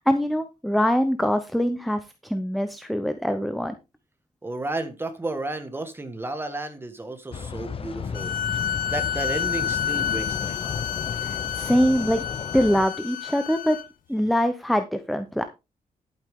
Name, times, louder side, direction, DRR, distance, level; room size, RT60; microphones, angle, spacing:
voice 1, 0.0-3.8 11.2-12.2 12.5-13.8 14.1-15.4, equal, ahead, 0.8 m, -23 dB
voice 2, 4.4-8.3 8.9-10.8, right 2 dB, 15° right, 1.6 m, -32 dB
sound 1, 7.3-12.9, left 6 dB, 40° left, 0.8 m, -34 dB
sound 2, 8.1-13.8, left 9 dB, 70° left, 1.0 m, -29 dB
11.5 x 8.9 x 3.7 m
wide cardioid pair, 170°, 15 cm